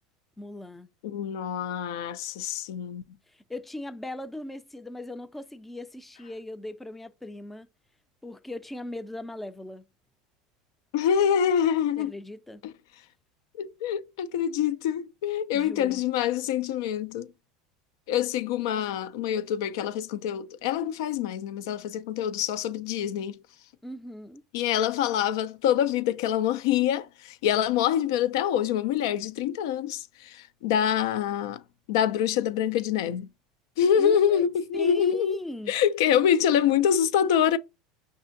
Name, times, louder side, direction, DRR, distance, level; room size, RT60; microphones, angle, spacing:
voice 1, 0.4-0.9 3.3-7.7 8.2-9.8 12.0-12.6 15.5-16.0 23.8-24.4 34.0-34.5 34.7-35.7, left 1 dB, 10° left, 0.4 m, -38 dB
voice 2, 1.0-3.0 10.9-12.1 12.6-12.7 13.6-17.3 18.1-23.4 24.5-31.6 31.9-33.3 33.8-35.4 35.7-37.6, left 9 dB, 75° left, 0.3 m, -25 dB
5.4 x 2.6 x 2.5 m
hypercardioid pair, 95°, 2 cm